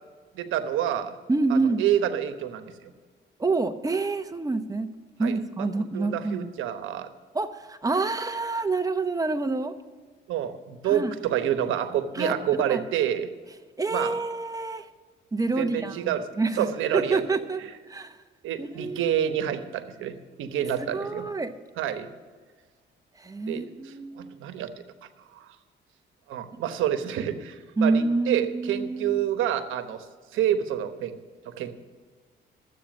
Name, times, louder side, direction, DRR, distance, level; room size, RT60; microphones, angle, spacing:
voice 1, 0.3-1.1 1.5-2.9 5.2-5.4 5.9-7.1 10.3-13.3 13.9-14.1 15.6-16.2 16.6-17.2 18.4-21.3 21.8-22.1 23.5-24.7 25.3-25.5 26.3-30.0 30.3-31.2 31.4-31.8, right 10 dB, 85° right, 9 dB, 1.0 m, -28 dB
voice 2, 1.3-1.8 3.4-4.9 5.2-6.5 7.3-9.8 10.8-11.1 12.1-12.3 12.7-12.8 13.8-14.9 15.3-16.7 16.9-17.6 17.9-18.2 18.6-19.1 20.8-21.5 23.2-24.4 27.8-29.2, right 3 dB, 15° right, 9 dB, 0.9 m, -27 dB
12.5 x 8.3 x 6.2 m, 1.5 s
cardioid pair, 90°, 20 cm